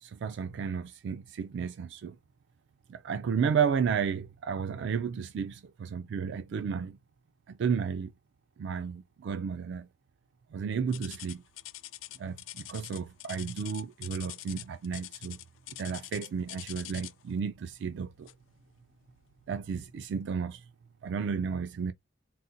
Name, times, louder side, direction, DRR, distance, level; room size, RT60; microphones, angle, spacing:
voice 1, 0.0-2.2 2.9-7.0 7.5-8.1 8.6-9.9 10.5-11.4 12.2-15.4 15.8-18.3 19.5-20.6 21.0-21.9, right 6 dB, 65° right, 0.3 m, -32 dB
sound 1, 10.9-17.3 18.3-18.5 19.1-19.2 19.9-20.0, left 16 dB, 80° left, 0.3 m, -44 dB
4.0 x 2.1 x 2.5 m
head